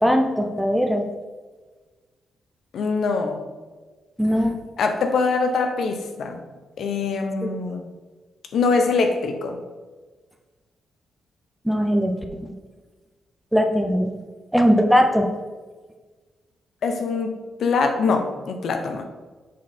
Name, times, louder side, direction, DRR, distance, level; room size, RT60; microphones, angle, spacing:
voice 1, 0.0-1.1 4.2-4.6 7.4-7.5 11.6-12.1 12.4-12.5 13.5-14.1 14.5-15.3, equal, ahead, 4 dB, 0.5 m, -19 dB
voice 2, 2.7-3.4 4.8-6.4 6.8-7.8 8.5-9.6 16.8-19.0, left 4 dB, 65° left, 5 dB, 0.8 m, -23 dB
7.4 x 4.2 x 4.2 m, 1.3 s
wide cardioid pair, 140°, 0 cm